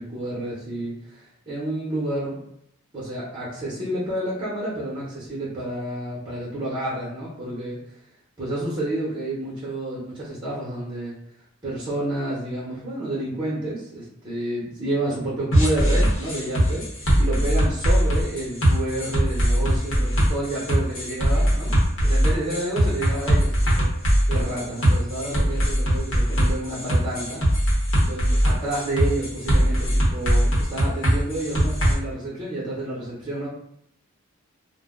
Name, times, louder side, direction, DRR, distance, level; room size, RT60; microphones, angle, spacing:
voice 1, 0.0-2.4 2.9-7.8 8.4-11.1 11.6-16.8 17.2-21.7 22.0-27.4 28.0-33.5, right 1 dB, 20° right, -8 dB, 1.0 m, -30 dB
sound 1, 15.5-31.9, equal, 70° left, 1.0 m, -20 dB
2.4 x 2.1 x 3.6 m, 0.74 s
head